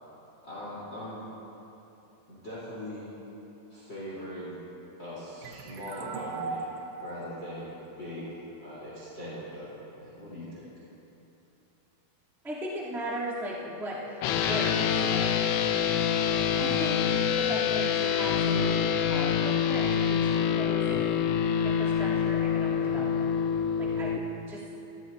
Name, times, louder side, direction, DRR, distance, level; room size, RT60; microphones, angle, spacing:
voice 1, 0.4-1.2 2.3-3.1 3.7-4.6 5.0-6.6 7.0-8.3 8.6-10.7, equal, 25° left, -8 dB, 3.8 m, -41 dB
sound 1, 5.4-8.8, right 4 dB, 75° right, 2.8 m, -40 dB
voice 2, 12.4-15.3 16.6-21.3 21.6-23.3 23.8-24.2 24.5-24.6, equal, ahead, -9 dB, 1.6 m, -37 dB
sound 2, 14.2-24.2, left 8 dB, 85° left, 3.1 m, -26 dB
24.0 x 17.0 x 2.8 m, 2.9 s
omnidirectional pair, 5.9 m